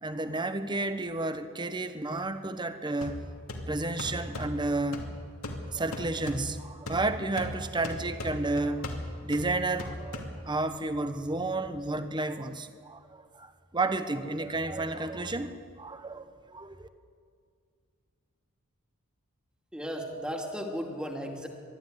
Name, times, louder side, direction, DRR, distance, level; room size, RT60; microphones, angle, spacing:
voice 1, 0.0-3.2 3.7-5.1 5.7-8.9 9.2-15.5 15.8-16.9, right 2 dB, 20° right, 10 dB, 1.0 m, -31 dB
sound 1, 3.0-10.7, left 1 dB, 75° left, 2.7 m, -39 dB
voice 2, 19.7-21.5, equal, 5° right, 2 dB, 2.3 m, -35 dB
23.0 x 13.0 x 9.7 m, 2.1 s
head